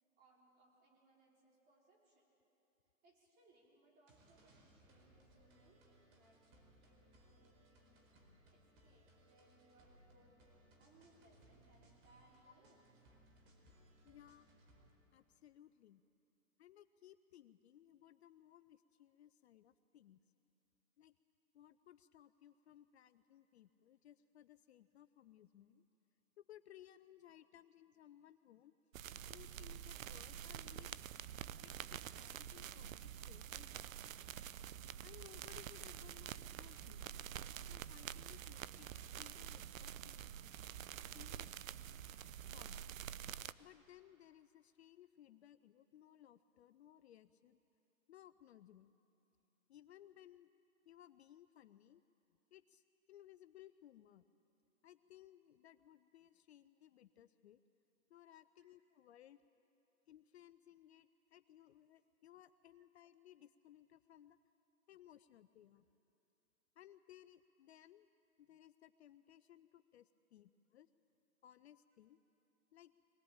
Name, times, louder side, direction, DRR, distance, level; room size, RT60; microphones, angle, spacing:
voice 1, 0.2-2.3 3.0-8.1 8.5-10.4 10.8-12.8 58.5-58.7, right 2 dB, 25° right, -2 dB, 4.7 m, -70 dB
sound 1, 4.1-14.9, right 1 dB, 45° right, 4.6 m, -67 dB
voice 2, 14.0-14.5 15.1-16.0 16.6-20.2 21.0-21.1 21.5-25.8 26.4-28.7 29.3-31.0 31.6-33.7 35.0-37.0 37.6-40.6 41.1-41.5 42.5-42.8 43.6-47.6 48.1-48.9 49.7-50.5 50.9-52.0 52.5-54.2 54.8-57.6 58.1-59.4 60.1-64.4 64.9-65.9 66.8-68.1 68.4-70.9 71.4-72.2 72.7-72.9, left 12 dB, 50° left, 12 dB, 0.6 m, -62 dB
sound 2, 28.9-43.5, right 10 dB, 70° right, 0.7 m, -48 dB
23.5 x 18.0 x 8.8 m, 3.0 s
hypercardioid pair, 135°, 41 cm